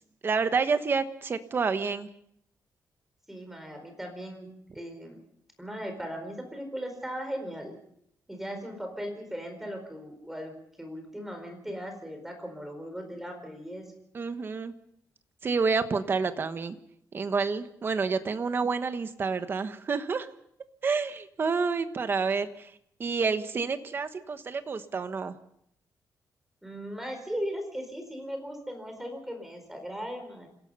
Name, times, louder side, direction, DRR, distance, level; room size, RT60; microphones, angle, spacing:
voice 1, 0.2-2.1 14.1-14.7 15.4-16.7 17.1-20.3 20.8-22.7 23.0-25.3, right 5 dB, 30° right, 10 dB, 1.2 m, -29 dB
voice 2, 3.3-4.5 4.7-5.2 5.6-7.8 8.3-13.9 26.6-30.5, equal, 5° right, 4 dB, 4.5 m, -38 dB
27.0 x 17.0 x 5.6 m, 0.72 s
wide cardioid pair, 170°, 7 cm